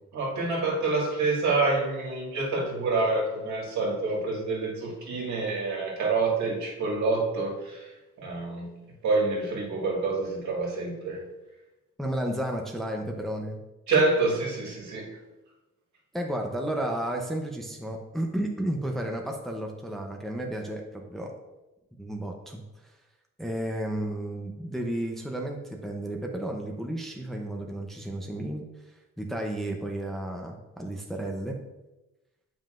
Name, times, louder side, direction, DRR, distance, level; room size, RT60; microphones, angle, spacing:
voice 1, 0.1-7.9 8.2-8.7 9.0-11.2 13.9-15.1, right 3 dB, 70° right, -3 dB, 2.1 m, -27 dB
voice 2, 12.0-13.6 16.1-21.3 22.0-22.9 23.4-31.6, right 1 dB, ahead, 1 dB, 0.7 m, -32 dB
7.2 x 5.6 x 2.5 m, 1.0 s
cardioid pair, 90°, 30 cm